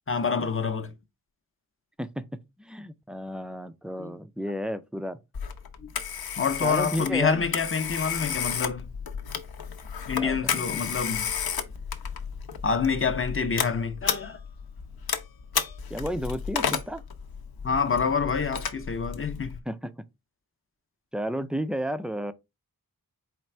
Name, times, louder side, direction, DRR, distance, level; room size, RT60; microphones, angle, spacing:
voice 1, 0.1-0.9 4.0-4.1 5.8-5.9 6.3-8.9 10.1-11.3 12.6-14.4 17.6-19.6, left 5 dB, 35° left, 0.6 m, -27 dB
voice 2, 2.6-5.2 6.6-7.5 10.2-10.8 15.9-17.0 19.7-20.0 21.1-22.3, equal, 5° right, 0.3 m, -32 dB
Telephone, 5.3-19.6, left 7 dB, 75° left, 0.7 m, -33 dB
4.4 x 2.4 x 4.3 m
wide cardioid pair, 100°, 37 cm